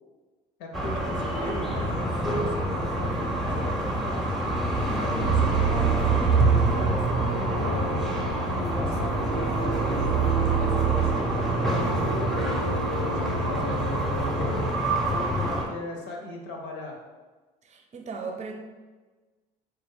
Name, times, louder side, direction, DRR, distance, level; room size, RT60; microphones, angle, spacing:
voice 1, 0.6-4.2 4.8-6.0 6.4-8.1 8.5-12.5 12.9-14.7 15.1-17.0, left 2 dB, 70° left, 1 dB, 0.7 m, -39 dB
sound 1, 0.7-15.7, right 1 dB, ahead, 0.7 m, -27 dB
voice 2, 4.9-5.3 8.9-9.1 17.6-18.6, right 4 dB, 40° right, 3 dB, 0.6 m, -38 dB
sound 2, 5.1-14.7, right 7 dB, 85° right, 0.5 m, -29 dB
3.4 x 2.2 x 3.5 m, 1.3 s
supercardioid pair, 75°, 19 cm